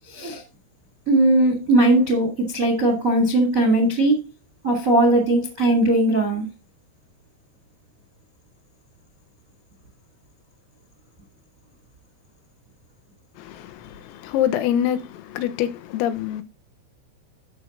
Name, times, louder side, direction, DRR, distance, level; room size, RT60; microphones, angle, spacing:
voice 1, 0.1-0.4 1.1-4.2 4.6-6.4, right 1 dB, 65° right, 0.8 m, -19 dB
voice 2, 13.4-16.4, left 10 dB, 85° left, 3.7 m, -25 dB
13.5 x 6.0 x 3.9 m
omnidirectional pair, 5.9 m